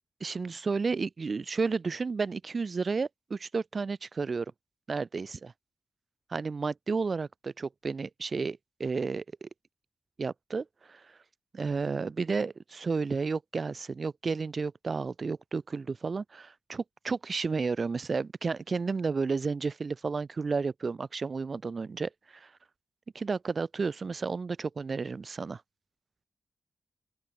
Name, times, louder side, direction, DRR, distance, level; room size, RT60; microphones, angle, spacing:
voice 1, 0.2-4.5 4.9-5.5 6.3-9.5 10.2-11.0 11.5-22.5 23.1-25.6, right 4 dB, 45° right, 2.3 m, -32 dB
open air
wide cardioid pair, 130°, 0 cm